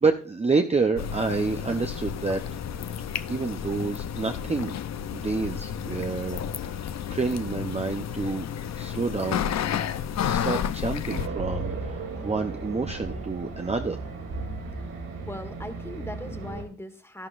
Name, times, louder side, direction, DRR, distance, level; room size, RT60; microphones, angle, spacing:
voice 1, 0.0-2.4 3.3-4.8 5.1-8.5 8.8-9.5 10.2-14.0, right 4 dB, 20° right, 5 dB, 0.7 m, -28 dB
sound 1, 1.0-11.3, left 8 dB, 50° left, 0.6 m, -31 dB
Race car auto racing, 11.1-16.6, right 3 dB, 80° right, 3.0 m, -35 dB
voice 2, 15.2-17.3, left 1 dB, 5° left, 8 dB, 1.4 m, -39 dB
11.5 x 11.0 x 2.5 m, 0.40 s
cardioid pair, 75°, 34 cm